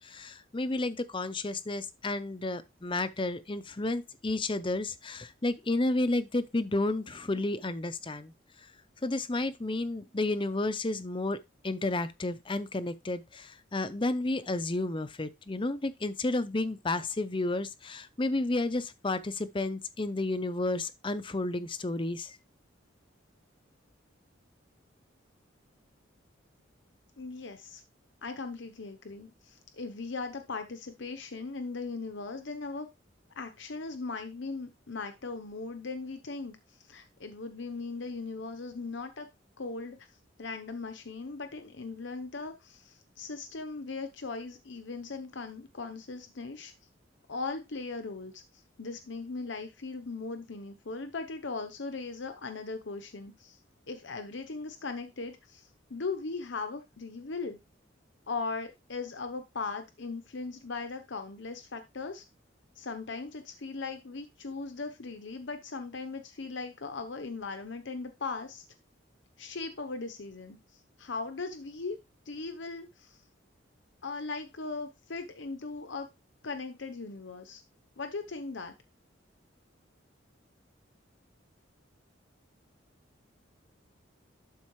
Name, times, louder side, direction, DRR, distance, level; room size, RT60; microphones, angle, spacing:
voice 1, 0.0-8.3 9.0-11.4 11.6-22.4, left 2 dB, 25° left, 0.6 m, -31 dB
voice 2, 27.2-27.8 28.2-32.9 33.4-39.3 39.6-40.0 40.4-46.7 47.3-53.6 53.9-57.6 58.3-62.2 62.8-68.6 69.4-72.0 72.3-73.2 74.0-76.1 76.4-77.6 78.0-78.7, left 3 dB, 70° left, 0.8 m, -39 dB
12.0 x 4.4 x 3.1 m
head